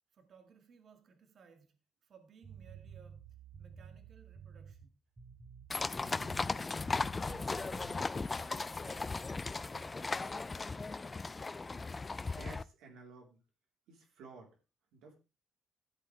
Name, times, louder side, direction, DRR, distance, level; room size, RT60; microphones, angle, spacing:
voice 1, 0.1-3.2 3.6-5.0 5.8-7.5 8.1-9.2 9.6-10.8, right 5 dB, 50° right, 2.0 m, -61 dB
sound 1, 2.4-4.8 5.2-5.7 6.0-6.5 6.8-8.0, right 7 dB, 25° right, 2.3 m, -52 dB
sound 2, 5.7-12.6, left 3 dB, 20° left, 0.4 m, -37 dB
voice 2, 12.4-13.4 13.9-14.6 14.9-15.1, right 4 dB, 90° right, 3.7 m, -53 dB
13.5 x 8.1 x 3.4 m
cardioid pair, 115°, 0 cm